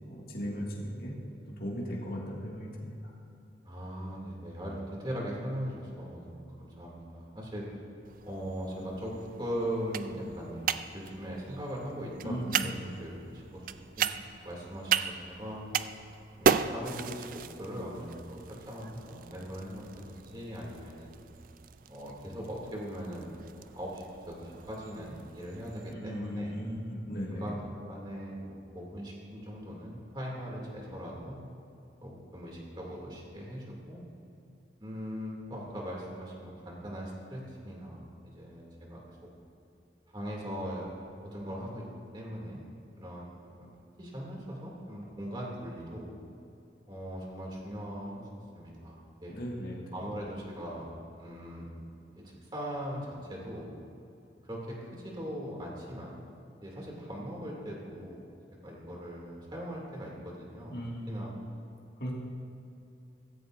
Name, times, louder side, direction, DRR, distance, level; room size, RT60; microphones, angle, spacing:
voice 1, 0.1-1.1 1.6-2.9 12.2-12.7 25.9-27.5 49.3-49.8 60.7-61.4 62.0-62.2, equal, 55° left, -3 dB, 2.0 m, -37 dB
voice 2, 3.6-7.7 8.2-10.6 10.9-14.1 14.4-15.7 16.4-21.1 21.9-26.5 27.3-31.4 32.0-34.0 34.8-39.2 40.1-40.9 41.2-41.8 42.1-42.6 43.0-43.7 44.0-46.1 46.9-49.3 49.9-50.9 51.1-51.7 52.2-53.7 54.4-56.2 56.6-58.3 58.6-60.7 61.1-61.3, equal, 25° right, -3 dB, 2.5 m, -40 dB
sound 1, 8.0-25.9, right 7 dB, 50° right, 0.3 m, -36 dB
15.5 x 15.0 x 2.6 m, 2.7 s
head